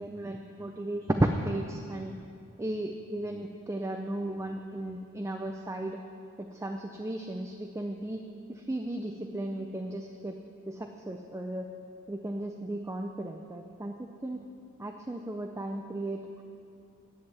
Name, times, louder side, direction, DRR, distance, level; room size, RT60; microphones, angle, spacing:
voice 1, 0.0-2.1 2.6-6.0 6.4-8.2 8.5-10.4 10.7-11.7 12.1-14.4 14.8-16.4, right 1 dB, 15° right, 3 dB, 0.4 m, -34 dB
10.5 x 7.6 x 8.0 m, 2.6 s
head